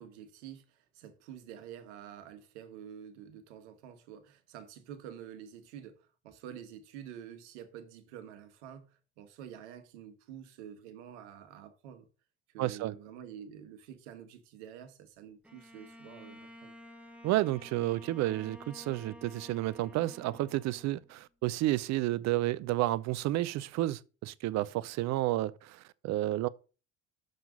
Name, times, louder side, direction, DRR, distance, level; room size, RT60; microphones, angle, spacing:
voice 1, 0.0-12.1 12.5-16.7, right 9 dB, 70° right, 1.5 m, -48 dB
voice 2, 12.6-12.9 17.2-26.5, right 16 dB, 50° right, 0.6 m, -31 dB
Bowed string instrument, 15.4-21.2, left 1 dB, 5° right, 1.6 m, -52 dB
6.5 x 5.7 x 5.3 m
hypercardioid pair, 65°, 35 cm